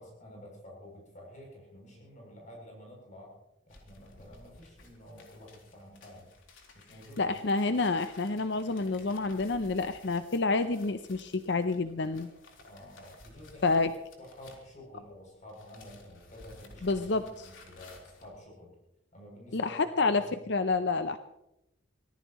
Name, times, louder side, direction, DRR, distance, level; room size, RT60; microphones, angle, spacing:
voice 1, 0.0-3.3 3.7-6.3 6.7-7.3 12.7-13.9 14.2-18.7 19.1-20.4, left 1 dB, 40° left, -1 dB, 7.5 m, -50 dB
sound 1, 3.7-15.1 15.4-18.3, left 2 dB, 90° left, 4.0 m, -56 dB
voice 2, 7.2-12.3 13.6-13.9 16.8-17.2 19.5-21.2, left 3 dB, 60° left, 10 dB, 0.7 m, -28 dB
25.0 x 18.0 x 3.1 m, 0.88 s
head